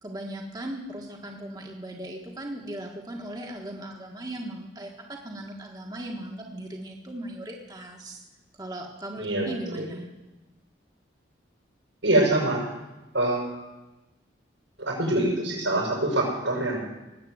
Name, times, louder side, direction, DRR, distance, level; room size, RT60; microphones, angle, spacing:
voice 1, 0.0-8.2 8.6-10.1, right 1 dB, 20° right, 0 dB, 1.5 m, -38 dB
voice 2, 9.1-9.8 12.0-12.6 13.1-13.5 14.8-16.8, right 1 dB, 85° right, -1 dB, 6.8 m, -25 dB
19.5 x 8.4 x 7.9 m, 1.0 s
head